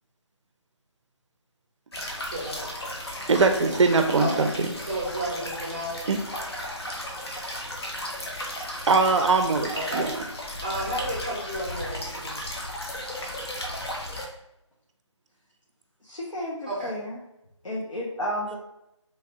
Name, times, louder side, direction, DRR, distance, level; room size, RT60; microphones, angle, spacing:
sound 1, 1.9-14.2, left 1 dB, 55° left, 0.7 m, -35 dB
voice 1, 2.2-2.7 4.2-4.5 4.8-6.0 9.7-12.6 16.7-16.9, right 1 dB, 20° right, -5 dB, 0.5 m, -32 dB
voice 2, 3.3-4.5 6.1-6.2 8.9-10.1, right 4 dB, 70° right, 6 dB, 0.4 m, -21 dB
voice 3, 16.0-17.2 17.6-18.6, equal, 90° left, -5 dB, 0.8 m, -32 dB
3.2 x 2.3 x 2.7 m, 0.85 s
figure-of-eight pair, 170°, 16 cm